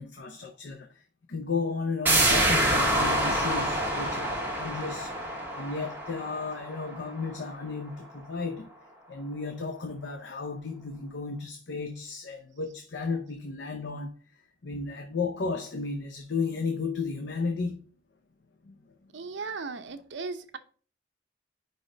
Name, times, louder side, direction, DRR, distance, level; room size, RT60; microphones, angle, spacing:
voice 1, 0.0-8.7 9.1-14.1 14.6-17.8 18.6-18.9, left 4 dB, 70° left, 0.7 m, -34 dB
sound 1, 2.1-7.5 7.9-8.0, right 1 dB, 10° right, 1.4 m, -27 dB
voice 2, 19.1-20.6, right 4 dB, 75° right, 0.7 m, -36 dB
5.2 x 4.1 x 4.8 m
head